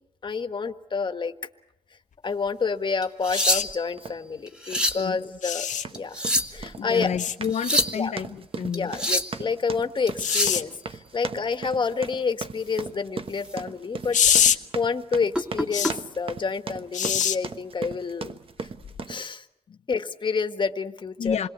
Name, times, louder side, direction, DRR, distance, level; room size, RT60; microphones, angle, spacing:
voice 1, 0.2-1.3 2.2-5.7 5.9-7.1 7.9-8.1 8.7-14.2 14.5-18.4 19.1-19.4 19.9-21.4, left 5 dB, 40° left, 1.6 m, -29 dB
sound 1, 3.0-3.9 4.5-5.1 5.9-6.7 7.4-8.0 8.7-9.4 10.1-10.6 12.7-12.8 13.3-13.6 14.0-14.2 15.3-15.9 17.0-17.2, equal, 5° right, 2.3 m, -26 dB
sound 2, 3.3-3.6 5.4-5.8 7.2-7.4 10.2-10.6 14.1-14.6 15.7-15.9 16.9-17.4 18.8-19.0, left 8 dB, 85° left, 1.3 m, -23 dB
sound 3, 4.0-4.2 4.7-5.0 5.7-19.2, right 4 dB, 45° right, 1.2 m, -37 dB
voice 2, 4.9-5.4 6.8-9.0 19.7-19.8 21.2-21.5, left 7 dB, 65° left, 0.9 m, -30 dB
27.5 x 22.0 x 8.2 m
wide cardioid pair, 135°, 13 cm